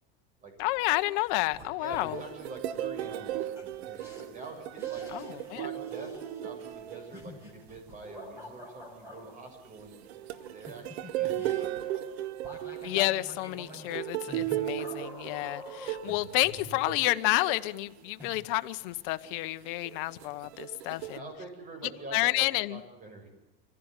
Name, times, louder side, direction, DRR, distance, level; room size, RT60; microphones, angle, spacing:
voice 1, 0.6-2.2 5.1-5.7 12.8-21.2 22.1-22.8, left 20 dB, 60° left, 1.1 m, -30 dB
sound 1, 0.6-0.9 1.1-2.4 3.6-3.7 4.0-4.2 4.8-5.6 5.8-9.2 10.3-17.9 18.2-18.4, left 1 dB, 10° right, 6.3 m, -47 dB
voice 2, 1.8-6.1 6.4-10.1 10.5-12.0 12.7-12.9 21.1-23.3, right 2 dB, 25° right, 6.9 m, -45 dB
sound 2, 1.9-7.7 9.6-17.8 18.5-18.7 19.9-21.2, right 12 dB, 80° right, 1.4 m, -36 dB
24.5 x 16.0 x 9.7 m
supercardioid pair, 140°, 31 cm